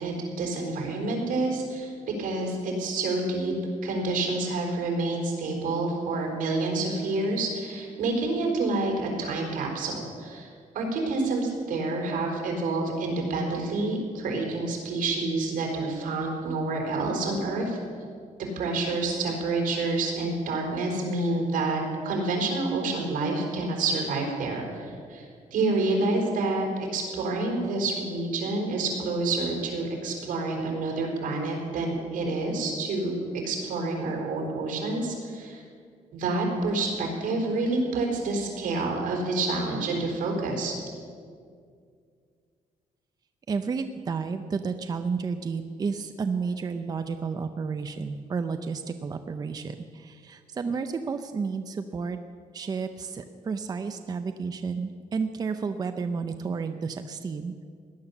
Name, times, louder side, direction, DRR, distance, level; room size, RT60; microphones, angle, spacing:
voice 1, 0.0-1.9 2.2-3.5 3.8-17.8 18.6-25.2 25.5-35.6 36.1-40.7, right 2 dB, 80° right, 0 dB, 4.4 m, -28 dB
voice 2, 43.5-52.2 52.5-57.5, right 5 dB, 30° right, 8 dB, 0.6 m, -31 dB
17.5 x 11.5 x 7.1 m, 2.2 s
cardioid pair, 160°, 14 cm